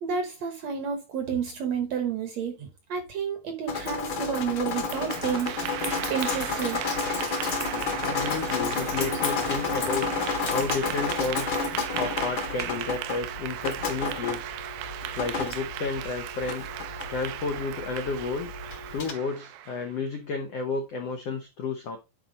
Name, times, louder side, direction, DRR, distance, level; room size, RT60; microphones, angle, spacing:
voice 1, 0.0-5.8 6.1-6.8, right 7 dB, 60° right, 1.9 m, -30 dB
Drip, 3.7-19.1, left 4 dB, 50° left, 1.6 m, -31 dB
Clapping / Applause, 4.7-20.0, right 13 dB, 80° right, 2.4 m, -37 dB
voice 2, 8.0-10.1 10.5-11.6 12.0-16.6 17.1-18.5 18.9-22.0, left 4 dB, 75° left, 1.4 m, -32 dB
10.0 x 4.4 x 3.9 m
omnidirectional pair, 4.3 m